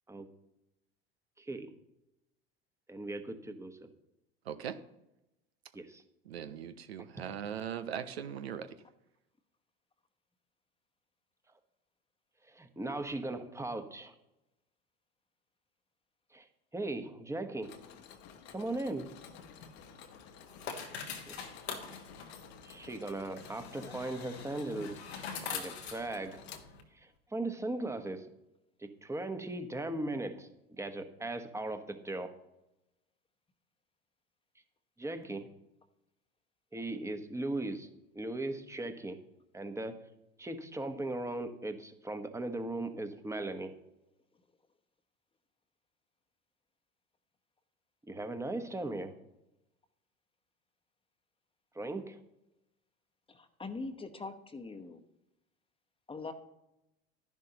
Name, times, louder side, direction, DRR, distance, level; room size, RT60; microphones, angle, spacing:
voice 1, 1.4-1.7 2.9-3.8 5.7-6.0 12.5-14.1 16.3-16.5 16.7-17.7 18.5-19.1 21.3-21.4 22.6-25.0 25.4-26.4 27.0-28.3 28.8-30.5 30.8-32.3 35.0-35.5 36.7-37.9 38.1-39.2 39.5-40.0 40.4-43.7 48.1-49.1 51.7-52.2, right 2 dB, 10° right, 8 dB, 1.1 m, -38 dB
voice 2, 4.5-4.8 6.3-8.7, right 8 dB, 80° right, 10 dB, 0.7 m, -39 dB
Mechanisms, 17.6-27.2, left 8 dB, 55° left, 1.2 m, -54 dB
sound 1, 19.1-26.8, left 6 dB, 80° left, 1.4 m, -44 dB
voice 3, 53.3-55.0 56.1-56.3, left 3 dB, 15° left, 7 dB, 1.1 m, -42 dB
11.5 x 10.5 x 2.9 m, 0.91 s
hypercardioid pair, 70°, 31 cm